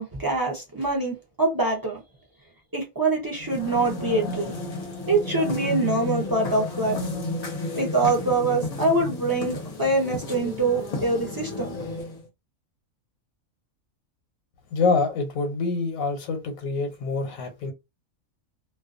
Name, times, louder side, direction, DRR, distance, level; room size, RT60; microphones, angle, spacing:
voice 1, 0.0-2.0 2.7-4.5 5.1-7.0 7.7-11.7, right 2 dB, 35° right, 0.3 m, -24 dB
sound 1, 3.3-12.3, left 2 dB, 40° left, 0.6 m, -32 dB
voice 2, 14.7-17.7, left 4 dB, 85° left, 1.0 m, -26 dB
2.3 x 2.2 x 2.4 m
omnidirectional pair, 1.4 m